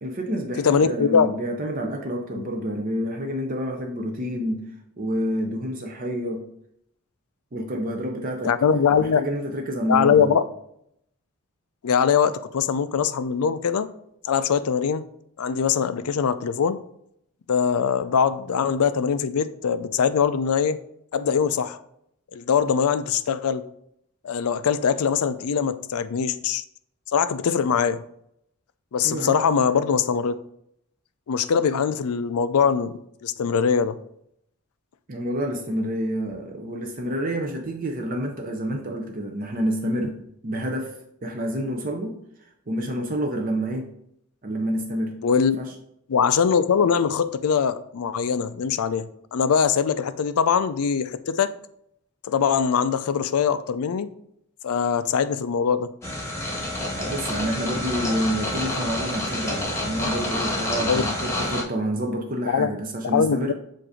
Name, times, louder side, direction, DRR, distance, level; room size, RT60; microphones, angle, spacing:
voice 1, 0.0-4.6 5.0-6.4 7.5-10.4 29.0-29.4 35.1-40.1 40.4-40.9 41.2-42.2 42.7-43.9 44.4-45.2 45.6-45.7 56.8-63.5, equal, 40° right, 2 dB, 0.6 m, -28 dB
voice 2, 0.6-1.3 2.4-2.5 8.4-9.2 9.9-10.4 11.8-13.9 14.2-15.0 15.4-16.8 17.5-20.8 21.1-21.8 22.3-23.6 24.2-26.6 27.1-28.0 28.9-30.4 31.3-32.9 33.2-34.0 45.2-45.6 46.1-51.5 52.2-54.1 54.6-55.9 60.9-61.0 62.5-62.7 63.1-63.5, left 6 dB, 85° left, 13 dB, 0.4 m, -22 dB
sound 1, 56.0-61.6, left 1 dB, 10° left, 1.0 m, -28 dB
7.5 x 2.6 x 4.9 m, 0.73 s
head